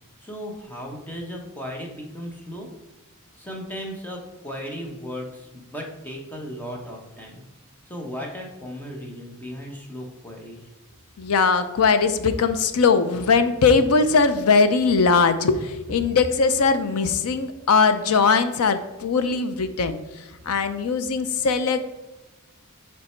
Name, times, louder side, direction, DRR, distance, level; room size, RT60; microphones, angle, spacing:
voice 1, 0.2-2.7 3.3-7.4 7.8-10.6, equal, 10° left, -1 dB, 1.0 m, -36 dB
voice 2, 11.2-20.0 20.5-21.9, left 4 dB, 75° left, 10 dB, 0.5 m, -20 dB
7.7 x 3.4 x 4.4 m, 1.0 s
head